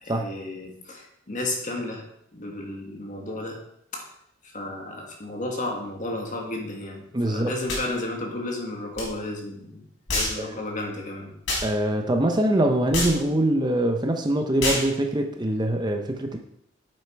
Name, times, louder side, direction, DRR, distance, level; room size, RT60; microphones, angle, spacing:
voice 1, 0.0-2.1 2.3-3.6 3.9-4.1 4.5-9.8 10.1-11.3, left 2 dB, 40° left, 1 dB, 2.0 m, -33 dB
voice 2, 7.1-7.5 10.4-10.5 11.6-16.4, right 1 dB, 20° right, 4 dB, 0.8 m, -23 dB
sound 1, 7.7-7.9 9.0-9.1 10.1-10.4 11.5-11.7 12.9-13.2 14.6-14.9, left 2 dB, 75° left, 4.0 m, -26 dB
9.5 x 7.4 x 4.6 m, 0.74 s
head